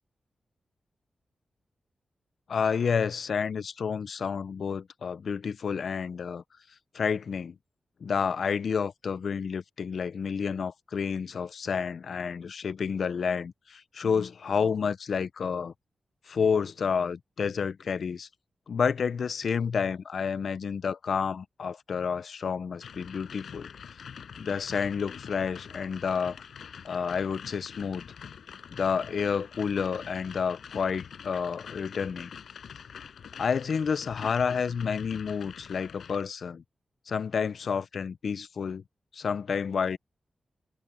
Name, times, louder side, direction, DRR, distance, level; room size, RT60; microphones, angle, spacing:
voice 1, 2.5-6.4 6.9-7.6 8.0-15.7 16.3-18.3 18.7-24.0 24.4-26.4 26.8-28.0 28.7-32.3 33.4-36.6 37.1-38.8 39.1-40.0, left 6 dB, 65° left, 0.6 m, -30 dB
sound 1, 22.8-36.2, left 7 dB, 90° left, 5.2 m, -45 dB
wide cardioid pair, 150°, 0 cm